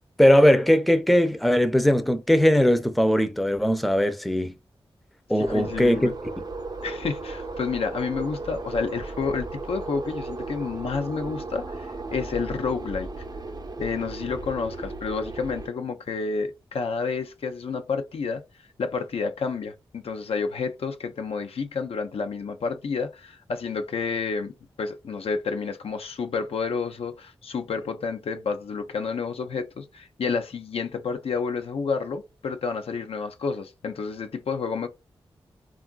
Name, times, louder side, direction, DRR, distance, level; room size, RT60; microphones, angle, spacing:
voice 1, 0.2-4.6 5.3-6.1, equal, ahead, 0.5 m, -19 dB
voice 2, 5.4-6.1 6.8-13.2 13.8-18.4 18.8-34.9, left 5 dB, 75° left, 0.5 m, -30 dB
sound 1, 5.4-15.7, right 3 dB, 40° right, 0.6 m, -35 dB
3.6 x 2.4 x 2.3 m
cardioid pair, 45°, 10 cm